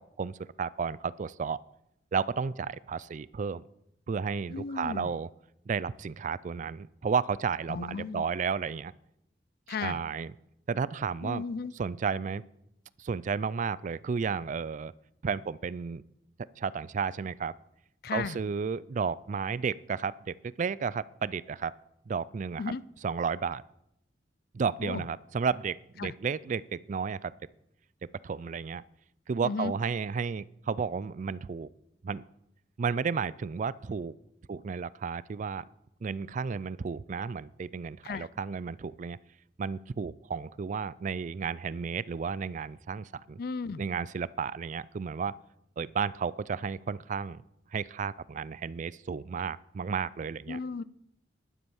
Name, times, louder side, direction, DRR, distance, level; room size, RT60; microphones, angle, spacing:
voice 1, 0.0-1.6 2.1-3.6 4.1-5.3 5.7-8.9 9.8-10.3 10.7-11.4 11.8-12.4 13.0-14.9 15.2-16.0 16.6-17.5 18.1-21.7 22.1-22.6 23.0-23.6 24.5-27.3 28.2-28.8 29.3-31.7 32.0-32.2 32.8-34.1 34.5-35.7 36.0-39.2 39.6-43.4 43.8-45.4 45.8-47.4 47.7-50.6, right 5 dB, 45° right, 20 dB, 0.4 m, -32 dB
voice 2, 4.5-5.1 7.7-8.3 9.7-10.0 11.2-11.7 18.0-18.4 22.6-22.8 24.8-25.1 26.0-26.1 29.4-29.7 38.0-38.3 43.4-43.8 50.5-50.8, left 4 dB, 60° left, 19 dB, 0.4 m, -35 dB
11.0 x 9.7 x 7.1 m, 0.81 s
head